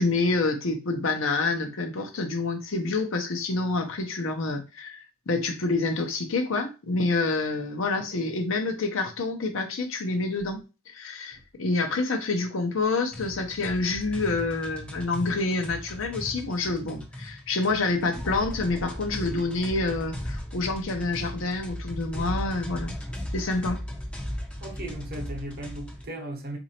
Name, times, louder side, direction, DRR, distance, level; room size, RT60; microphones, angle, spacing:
voice 1, 0.0-10.6 10.9-22.9 23.3-23.8, left 3 dB, 60° left, 0.7 m, -27 dB
sound 1, 13.1-26.0, equal, 5° left, 0.6 m, -37 dB
voice 2, 24.6-26.6, right 1 dB, 45° right, 0.9 m, -36 dB
4.1 x 2.6 x 2.9 m
head